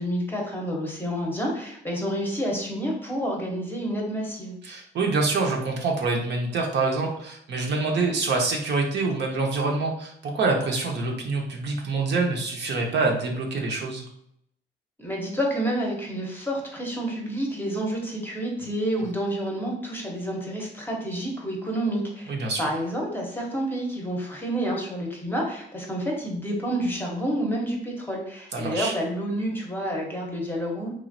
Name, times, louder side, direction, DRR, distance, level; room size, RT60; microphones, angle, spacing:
voice 1, 0.0-4.5 15.0-22.3 22.6-30.9, equal, 10° left, -1 dB, 0.8 m, -29 dB
voice 2, 4.6-14.0 22.3-22.6 28.5-28.9, right 3 dB, 60° right, 1 dB, 0.7 m, -26 dB
3.0 x 2.4 x 2.6 m, 0.72 s
cardioid pair, 90°, 20 cm